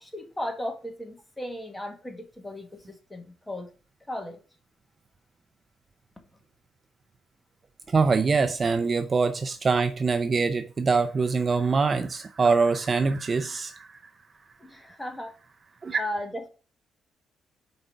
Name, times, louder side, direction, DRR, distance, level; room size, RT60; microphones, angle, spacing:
voice 1, 0.0-3.7 4.1-4.4 14.6-15.3 16.0-16.5, left 1 dB, 10° left, 1.5 m, -36 dB
voice 2, 7.9-14.0 15.8-16.0, right 4 dB, 35° right, 0.5 m, -24 dB
5.0 x 4.0 x 5.5 m
cardioid pair, 90°, 0 cm